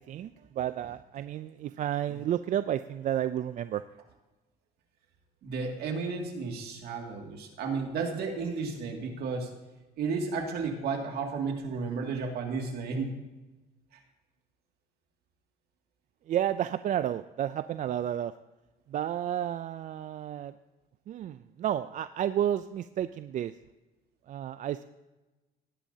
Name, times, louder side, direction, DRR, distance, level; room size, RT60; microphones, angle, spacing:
voice 1, 0.0-3.8 16.3-18.3 18.9-20.5 21.1-23.5 24.3-24.8, right 11 dB, 50° right, 13 dB, 0.4 m, -31 dB
voice 2, 5.4-9.6 10.0-13.1 13.9-14.0, right 4 dB, 70° right, 2 dB, 2.2 m, -33 dB
18.5 x 10.0 x 2.8 m, 1.1 s
cardioid pair, 110°, 17 cm